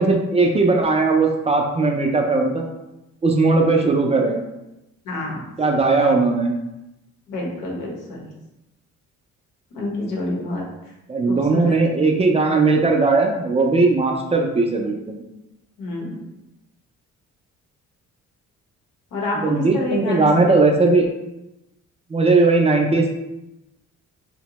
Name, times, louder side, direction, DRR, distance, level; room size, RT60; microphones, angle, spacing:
voice 1, 0.0-2.7 3.2-4.4 5.6-6.5 11.1-15.2 19.4-21.1 22.1-23.1, right 3 dB, 20° right, 1 dB, 0.3 m, -18 dB
voice 2, 5.0-5.4 7.3-8.3 9.7-10.6 11.3-11.7 15.8-16.2 19.1-20.3, left 2 dB, 90° left, -2 dB, 0.9 m, -28 dB
2.7 x 2.1 x 2.9 m, 0.93 s
cardioid pair, 90°, 30 cm